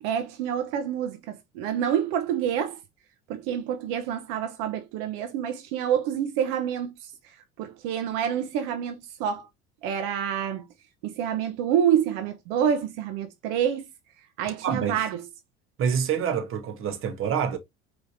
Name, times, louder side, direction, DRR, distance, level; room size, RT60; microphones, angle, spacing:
voice 1, 0.0-2.8 3.3-9.5 9.8-10.7 11.0-13.9 14.4-15.2, right 9 dB, 75° right, 0.8 m, -27 dB
voice 2, 14.6-15.0 15.8-17.6, right 7 dB, 45° right, 1.1 m, -27 dB
4.7 x 3.1 x 2.6 m
supercardioid pair, 95°, 31 cm